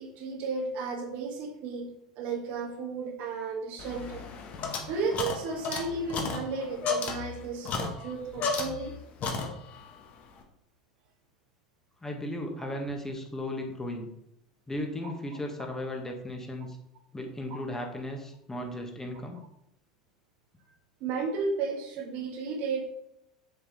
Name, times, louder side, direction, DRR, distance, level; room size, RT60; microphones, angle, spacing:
voice 1, 0.0-4.3 4.9-8.9 17.5-17.6 21.0-22.8, right 4 dB, 50° right, 2 dB, 1.9 m, -33 dB
sound 1, 3.8-9.0 9.2-9.9, left 4 dB, 40° left, 1.8 m, -33 dB
voice 2, 12.0-14.1 14.7-16.8 17.1-19.4, left 1 dB, 15° left, 2 dB, 1.7 m, -36 dB
7.0 x 6.6 x 4.3 m, 0.78 s
figure-of-eight pair, 75°, 4 cm